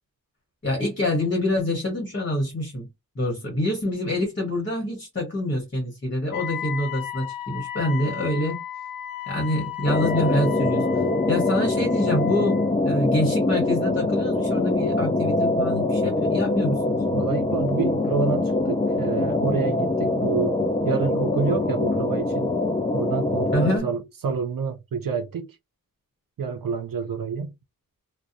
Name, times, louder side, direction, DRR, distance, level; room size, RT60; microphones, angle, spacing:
voice 1, 0.6-2.9 3.2-8.6 9.3-10.9 11.3-12.6 12.9-17.0 23.5-23.9, left 1 dB, 35° left, 1.1 m, -26 dB
Wind instrument woodwind instrument, 6.3-12.7, left 10 dB, 70° left, 0.5 m, -35 dB
sound 1, 9.9-23.8, left 2 dB, 15° left, 0.3 m, -24 dB
voice 2, 17.1-22.6 22.9-25.6 26.4-27.5, right 5 dB, 70° right, 0.6 m, -28 dB
2.6 x 2.1 x 2.5 m
wide cardioid pair, 105°, 35 cm